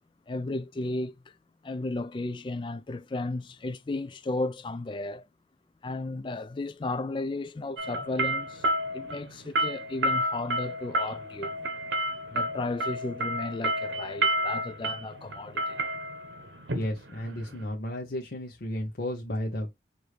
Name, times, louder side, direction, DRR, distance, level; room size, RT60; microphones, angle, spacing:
voice 1, 0.3-1.4 1.6-5.3 5.8-8.7 8.9-11.6 12.3-15.8, left 2 dB, 25° left, 0.3 m, -34 dB
sound 1, 7.8-17.6, right 1 dB, 85° right, 1.0 m, -30 dB
voice 2, 16.7-19.7, left 1 dB, 55° left, 0.8 m, -33 dB
4.8 x 2.7 x 3.2 m
head